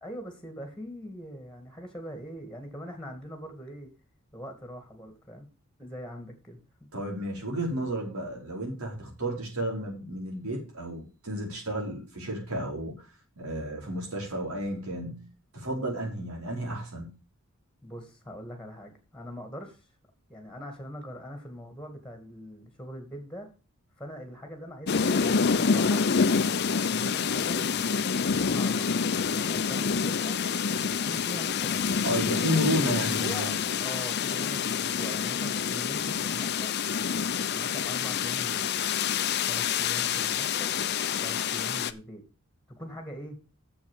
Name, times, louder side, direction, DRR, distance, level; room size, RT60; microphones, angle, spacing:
voice 1, 0.0-3.9 4.3-5.5 5.8-6.6 17.8-19.9 20.3-23.5 24.0-26.1 26.9-28.9 29.3-30.4 30.9-31.9 32.2-33.5 33.8-36.7 37.5-38.8 39.5-40.7 41.2-42.2 42.8-43.4, equal, 5° left, 5 dB, 2.2 m, -42 dB
voice 2, 6.9-13.0 13.4-15.3 15.5-17.1 32.0-33.6, equal, 90° right, -1 dB, 5.2 m, -32 dB
sound 1, 24.9-41.9, left 6 dB, 50° left, 0.6 m, -27 dB
7.4 x 7.0 x 7.4 m, 0.33 s
head